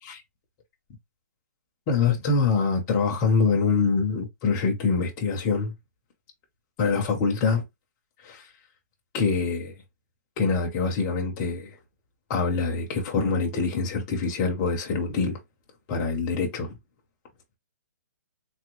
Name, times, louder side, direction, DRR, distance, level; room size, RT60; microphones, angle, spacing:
voice 1, 1.9-5.7 6.8-7.6 8.2-8.5 9.1-9.7 10.4-11.8 12.3-15.4 15.9-16.7, left 4 dB, 15° left, 0.6 m, -25 dB
3.4 x 2.2 x 2.9 m
hypercardioid pair, 175°, 10 cm